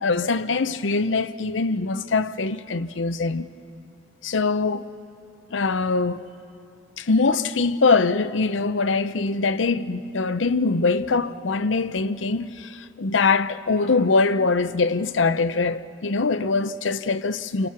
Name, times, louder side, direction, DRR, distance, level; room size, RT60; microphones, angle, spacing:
voice 1, 0.0-3.5 4.2-4.9 5.5-6.2 7.0-17.7, left 4 dB, 80° left, 0.7 m, -23 dB
29.0 x 29.0 x 5.9 m
head